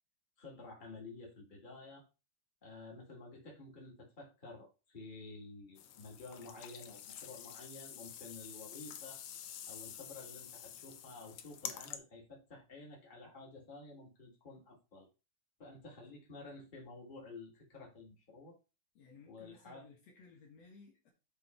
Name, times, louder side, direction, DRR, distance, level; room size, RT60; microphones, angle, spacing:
voice 1, 0.4-2.0 2.6-9.2 9.7-15.1 15.6-18.6 19.3-19.8, left 3 dB, 15° left, 2.5 m, -51 dB
sound 1, 5.8-12.0, left 10 dB, 90° left, 1.2 m, -48 dB
voice 2, 19.0-21.1, left 4 dB, 60° left, 2.6 m, -59 dB
7.8 x 4.9 x 4.5 m
omnidirectional pair, 3.5 m